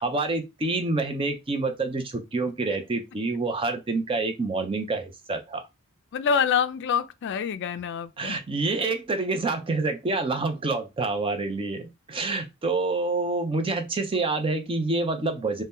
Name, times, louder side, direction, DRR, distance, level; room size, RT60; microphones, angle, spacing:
voice 1, 0.0-5.7 8.2-15.6, right 3 dB, 25° right, 0.5 m, -27 dB
voice 2, 6.1-8.4, left 7 dB, 55° left, 0.3 m, -26 dB
2.7 x 2.1 x 3.5 m
head